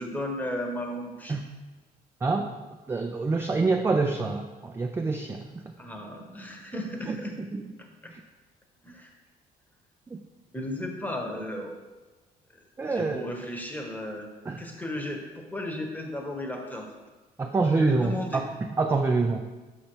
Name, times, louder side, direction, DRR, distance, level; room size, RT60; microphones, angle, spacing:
voice 1, 0.0-1.4 5.8-7.4 7.8-8.1 8.8-9.1 10.5-11.7 12.9-14.3 14.6-16.9 17.7-18.4, left 1 dB, 10° left, 2 dB, 1.0 m, -35 dB
voice 2, 2.2-2.5 2.9-5.6 7.1-7.2 7.5-7.6 8.1-8.2 10.1-10.2 12.8-13.2 14.5-14.6 17.4-19.5, right 3 dB, 15° right, 4 dB, 0.3 m, -26 dB
6.5 x 5.5 x 3.0 m, 1.2 s
cardioid pair, 110°, 17 cm